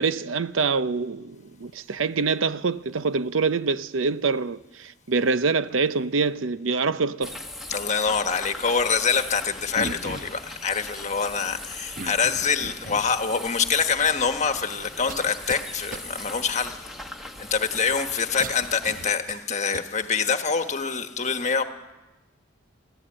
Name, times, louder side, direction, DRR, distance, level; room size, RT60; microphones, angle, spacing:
voice 1, 0.0-7.4, right 4 dB, 90° right, 0.7 m, -25 dB
sound 1, 7.2-19.2, left 1 dB, ahead, 1.3 m, -40 dB
voice 2, 7.7-16.9 17.4-21.6, left 5 dB, 35° left, 1.3 m, -25 dB
sound 2, 9.7-10.5 12.0-13.2 13.9-14.0 15.1-15.7 15.9-16.1 18.4-19.8, right 3 dB, 45° right, 1.0 m, -37 dB
22.5 x 15.5 x 8.8 m
head